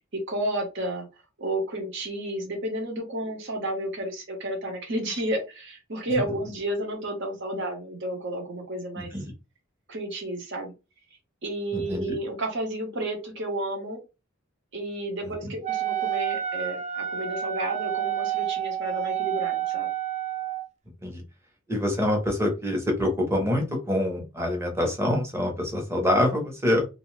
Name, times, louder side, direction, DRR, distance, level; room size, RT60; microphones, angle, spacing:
voice 1, 0.1-1.1 1.4-9.1 9.9-10.7 11.4-14.0 14.7-19.9, right 1 dB, 65° right, 2 dB, 1.1 m, -31 dB
voice 2, 9.0-9.3 11.7-12.2 15.4-15.5 21.0-21.2 21.7-26.9, left 1 dB, 15° right, 2 dB, 0.8 m, -26 dB
Wind instrument woodwind instrument, 15.6-20.7, right 11 dB, 35° right, 0.4 m, -29 dB
2.6 x 2.3 x 3.1 m, 0.28 s
head